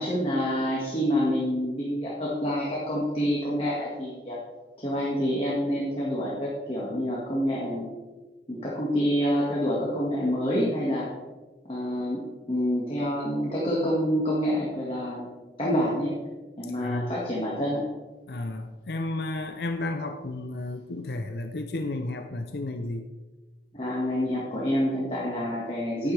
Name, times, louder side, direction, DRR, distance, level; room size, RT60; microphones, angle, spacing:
voice 1, 0.0-4.4 4.8-7.9 8.5-11.1 11.7-12.2 12.5-15.3 15.6-16.1 16.6-17.8 23.7-26.1, equal, 30° left, -6 dB, 1.8 m, -27 dB
voice 2, 16.8-17.1 18.3-23.1, left 2 dB, 70° left, 6 dB, 0.6 m, -32 dB
11.0 x 9.6 x 3.3 m, 1.3 s
head